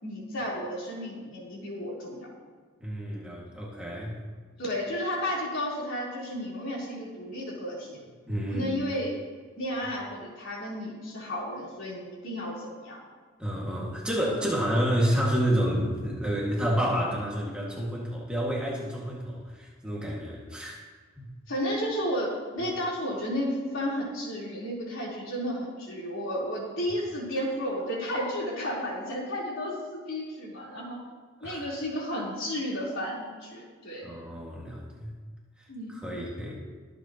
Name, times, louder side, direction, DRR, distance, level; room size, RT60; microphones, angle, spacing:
voice 1, 0.0-2.3 4.6-8.0 8.5-9.2 9.6-13.0 21.5-31.0 31.4-34.1 35.7-36.0, equal, 70° left, -4 dB, 3.8 m, -32 dB
voice 2, 2.8-4.1 8.3-8.7 13.4-20.8 21.2-21.3 31.4-31.7 34.0-35.1 35.9-36.5, equal, 5° right, -5 dB, 1.9 m, -29 dB
22.5 x 8.3 x 3.0 m, 1.5 s
head